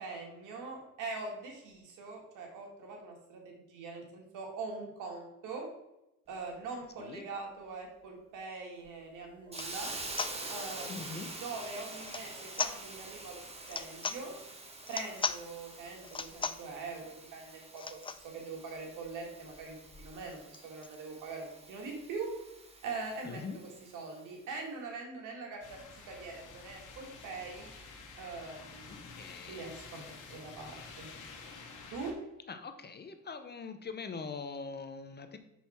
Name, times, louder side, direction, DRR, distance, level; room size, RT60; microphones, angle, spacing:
voice 1, 0.0-5.7 6.3-9.9 10.5-14.3 14.9-22.3 22.8-27.7 28.2-31.1 31.9-32.1, right 4 dB, 85° right, 1 dB, 2.0 m, -43 dB
sound 1, 8.8-8.9 9.5-9.7 10.2-10.4 12.0-12.3 12.5-12.8 13.6-14.2 14.8-15.4 16.0-16.7 17.8-18.2 18.8-18.9 19.1-19.2 19.5-21.0, left 5 dB, 20° left, 0.3 m, -37 dB
Hiss, 9.5-24.3, right 2 dB, 20° right, 1.4 m, -46 dB
voice 2, 10.9-11.3 23.2-23.6 29.2-29.7 30.3-30.4 32.5-35.4, left 5 dB, 35° left, 9 dB, 0.8 m, -43 dB
sound 2, 25.6-32.1, left 4 dB, 90° left, 1.4 m, -50 dB
5.9 x 5.5 x 4.4 m, 0.90 s
cardioid pair, 90°, 30 cm